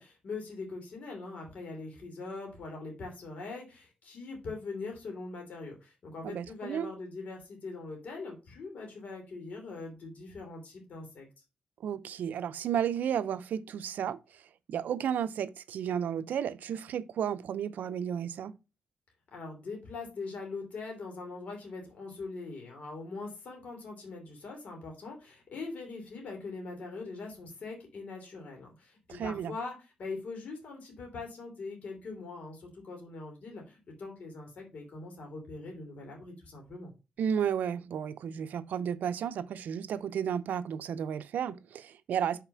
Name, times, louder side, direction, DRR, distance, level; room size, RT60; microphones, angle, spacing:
voice 1, 0.0-11.3 19.3-36.9, left 3 dB, 60° left, 2.9 m, -42 dB
voice 2, 6.2-6.9 11.8-14.2 14.7-18.6 29.1-29.5 37.2-42.4, right 8 dB, 85° right, 0.6 m, -33 dB
5.8 x 4.2 x 5.8 m
wide cardioid pair, 125°, 3 cm